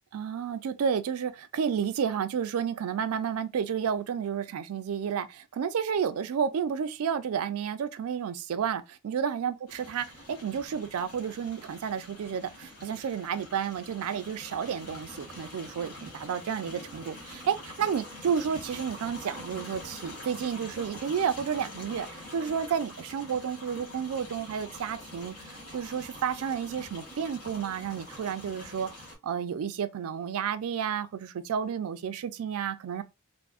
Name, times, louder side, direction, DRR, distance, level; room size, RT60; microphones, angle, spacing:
voice 1, 0.1-22.1 22.3-25.3 25.7-28.9 29.2-33.0, right 7 dB, 65° right, 0.3 m, -31 dB
sound 1, 9.7-29.1, left 1 dB, 85° left, 1.6 m, -45 dB
3.5 x 2.0 x 2.3 m
head